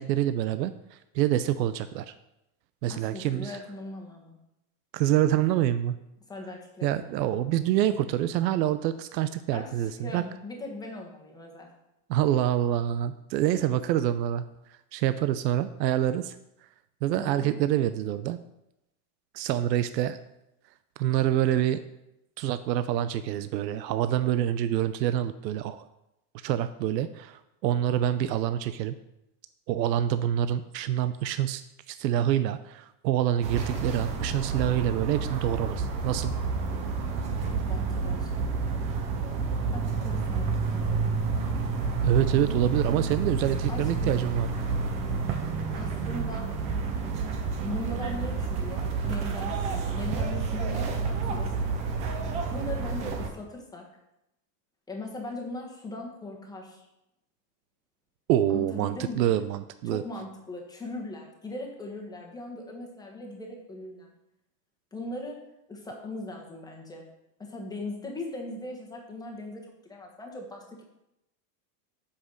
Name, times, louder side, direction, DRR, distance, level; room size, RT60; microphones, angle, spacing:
voice 1, 0.0-2.1 2.8-3.6 4.9-6.0 6.8-10.2 12.1-14.4 14.9-16.3 17.0-18.4 19.3-20.2 21.0-21.8 22.4-25.9 26.4-28.9 29.7-31.6 31.9-36.3 42.0-44.5 58.3-60.0, right 12 dB, 90° right, 12 dB, 0.7 m, -26 dB
voice 2, 2.9-4.4 6.3-7.4 9.5-11.7 17.1-17.5 37.5-38.5 39.7-41.2 43.7-44.2 45.7-46.5 47.6-52.0 52.5-53.8 54.9-56.8 58.5-59.3 59.8-64.1 64.9-65.4 65.7-67.0 67.4-70.8, left 2 dB, 10° left, 0 dB, 1.4 m, -39 dB
sound 1, 33.4-53.3, right 4 dB, 15° right, 0.3 m, -29 dB
8.1 x 5.8 x 6.4 m, 0.87 s
supercardioid pair, 155°, 49 cm